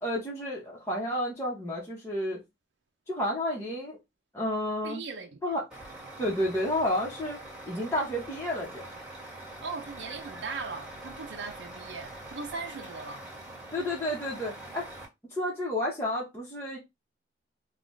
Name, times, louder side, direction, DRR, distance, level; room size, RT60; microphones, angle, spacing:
voice 1, 0.0-2.4 3.1-4.0 4.3-5.0 5.4-5.6 6.2-8.9 13.7-14.9 15.3-16.8, left 1 dB, 15° left, 1.0 m, -31 dB
voice 2, 4.8-5.4 9.6-13.2, right 4 dB, 75° right, 0.5 m, -39 dB
Truck, 5.7-15.1, right 1 dB, 5° right, 1.6 m, -44 dB
3.9 x 2.3 x 3.1 m
head